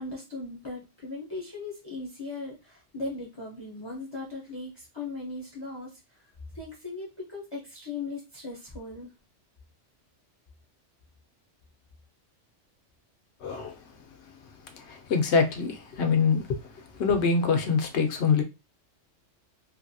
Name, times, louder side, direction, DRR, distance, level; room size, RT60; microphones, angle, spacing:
voice 1, 0.0-6.0 6.5-9.1, left 3 dB, 25° left, 0.7 m, -38 dB
voice 2, 13.4-13.8 14.8-16.4 17.0-18.4, left 5 dB, 70° left, 0.9 m, -24 dB
2.9 x 2.6 x 2.6 m
omnidirectional pair, 1.3 m